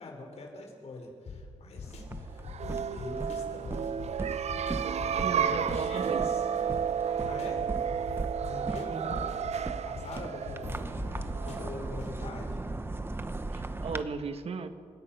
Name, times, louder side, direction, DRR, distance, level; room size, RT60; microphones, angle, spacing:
voice 1, 0.0-2.4 2.9-3.9 5.7-6.5 7.2-7.7 8.4-9.3 9.8-12.6, left 2 dB, 70° left, 2 dB, 4.8 m, -44 dB
sound 1, 1.3-12.1, left 4 dB, 90° left, 3.6 m, -44 dB
sound 2, 1.8-14.0, right 2 dB, 20° right, 0.9 m, -39 dB
sound 3, 2.4-11.9, right 8 dB, 80° right, 0.7 m, -32 dB
voice 2, 5.2-6.3 8.9-9.1 13.5-14.7, right 5 dB, 65° right, 8 dB, 1.5 m, -36 dB
29.5 x 17.0 x 5.8 m, 2.1 s
wide cardioid pair, 170°, 11 cm